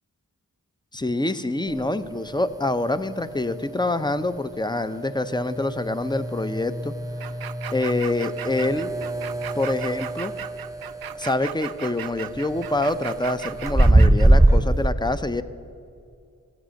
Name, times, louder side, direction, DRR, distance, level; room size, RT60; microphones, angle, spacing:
voice 1, 0.9-6.9 7.7-8.9 9.6-10.3 11.1-15.4, left 2 dB, 15° left, 12 dB, 0.6 m, -26 dB
sound 1, 1.7-14.9, right 1 dB, 10° right, 0.9 m, -24 dB
sound 2, 7.2-14.3, right 10 dB, 80° right, 0.5 m, -36 dB
15.5 x 8.0 x 6.4 m, 2.4 s
cardioid pair, 45°, 35 cm